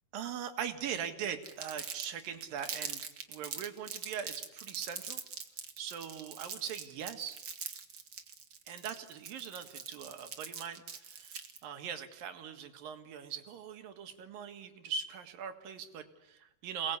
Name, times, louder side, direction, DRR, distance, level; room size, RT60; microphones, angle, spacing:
voice 1, 0.1-3.0 3.3-5.2 5.8-7.4 8.7-17.0, right 8 dB, 90° right, 7 dB, 3.5 m, -41 dB
Crumpling crinkling, 1.4-11.6, right 6 dB, 45° right, 1.9 m, -43 dB
28.0 x 19.5 x 8.3 m, 0.90 s
omnidirectional pair, 3.9 m